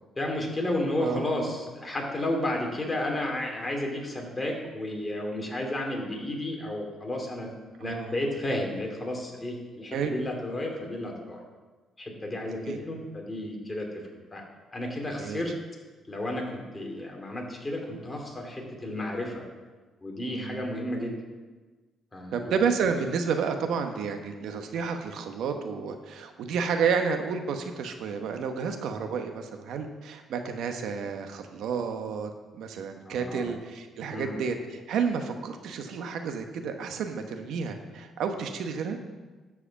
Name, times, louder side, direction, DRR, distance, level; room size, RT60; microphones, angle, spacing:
voice 1, 0.2-7.5 7.8-11.4 12.0-13.9 14.3-14.4 14.7-15.5 16.1-19.4 20.0-21.2 22.1-22.6 33.1-33.5 34.1-34.4, left 1 dB, 20° left, 0 dB, 2.6 m, -32 dB
voice 2, 1.0-1.5 7.8-8.2 9.9-10.1 12.7-12.8 15.1-15.4 20.2-20.7 22.3-39.0, right 6 dB, 80° right, 6 dB, 0.9 m, -31 dB
11.5 x 4.9 x 7.4 m, 1.3 s
cardioid pair, 90°, 0 cm